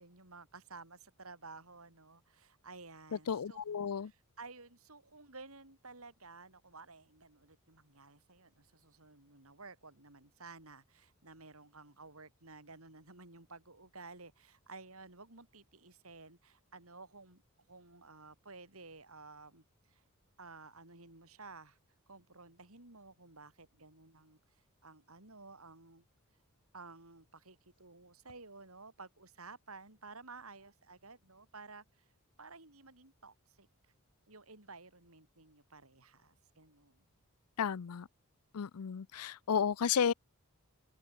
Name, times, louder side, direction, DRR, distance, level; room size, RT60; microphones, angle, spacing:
voice 1, 0.0-3.6 4.0-17.4 17.7-20.0 20.4-21.8 22.1-26.1 26.7-32.1 32.4-33.9 34.3-37.1, right 3 dB, 70° right, 5.6 m, -54 dB
voice 2, 3.3-4.1 37.6-38.1 38.5-40.1, left 7 dB, 85° left, 0.5 m, -32 dB
open air
head